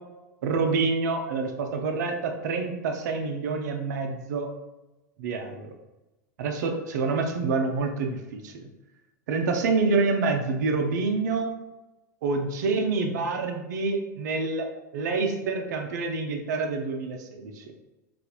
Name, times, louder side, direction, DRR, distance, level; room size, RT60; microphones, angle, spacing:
voice 1, 0.4-4.5 5.2-5.7 6.4-8.7 9.3-11.5 12.2-14.7 14.9-17.6, right 4 dB, 65° right, 4 dB, 0.5 m, -27 dB
4.1 x 2.4 x 2.4 m, 1.0 s
hypercardioid pair, 95°, 10 cm